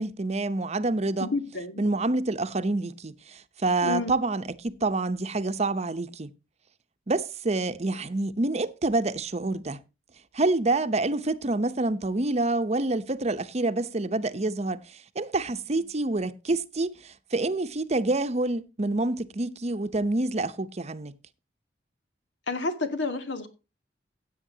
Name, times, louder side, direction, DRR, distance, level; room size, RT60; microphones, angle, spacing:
voice 1, 0.0-1.3 1.8-6.3 7.1-9.8 10.3-21.1, right 2 dB, 40° right, 0.8 m, -27 dB
voice 2, 1.2-1.9 3.8-4.2 22.5-23.5, left 3 dB, 90° left, 2.3 m, -30 dB
16.5 x 8.6 x 2.8 m
head